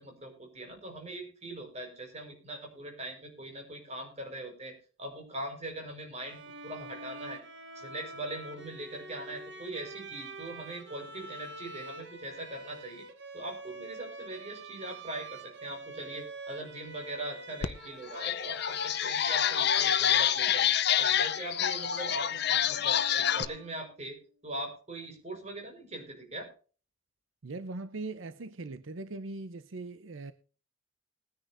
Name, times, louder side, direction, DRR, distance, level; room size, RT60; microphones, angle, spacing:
voice 1, 0.0-7.4 7.7-13.1 13.3-20.7 21.0-24.2 24.4-26.5, right 1 dB, 35° right, 4.8 m, -41 dB
Bowed string instrument, 6.1-24.0, right 2 dB, 60° right, 1.7 m, -46 dB
sound 1, 17.6-17.7 18.1-23.4, left 9 dB, 55° left, 0.7 m, -27 dB
voice 2, 27.4-30.3, right 3 dB, 80° right, 0.7 m, -40 dB
20.5 x 10.0 x 2.6 m
head